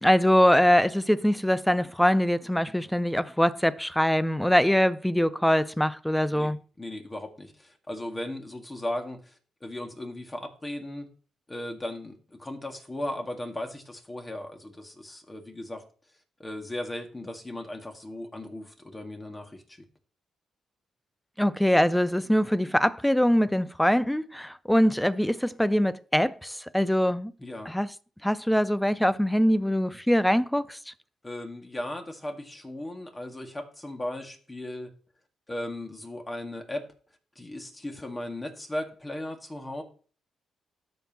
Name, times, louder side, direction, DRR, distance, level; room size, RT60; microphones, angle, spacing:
voice 1, 0.0-6.6 21.4-27.3 27.7-27.9 28.2-30.8, equal, 5° left, 0.5 m, -23 dB
voice 2, 6.3-11.1 11.5-15.8 16.4-19.8 27.4-27.7 31.2-34.9 35.5-36.9 37.4-39.8, left 1 dB, 20° left, 1.9 m, -37 dB
13.0 x 5.5 x 2.9 m
cardioid pair, 85°, 0 cm